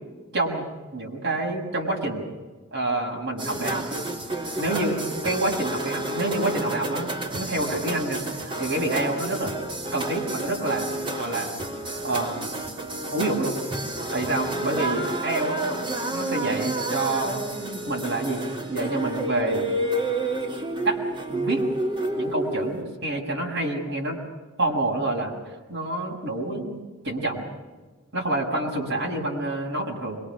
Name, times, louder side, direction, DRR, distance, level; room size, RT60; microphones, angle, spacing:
voice 1, 0.3-0.6 0.9-2.3 2.7-3.8 4.6-9.5 9.9-11.5 12.0-12.5 13.1-13.5 14.1-15.8 16.1-17.4 17.9-19.7 20.8-21.0 21.3-21.6 22.2-24.2 24.6-27.4 28.1-30.2, right 2 dB, 60° right, 0 dB, 6.9 m, -28 dB
sound 1, 3.4-22.8, right 1 dB, 25° right, 4.0 m, -30 dB
26.0 x 23.5 x 6.3 m, 1.3 s
head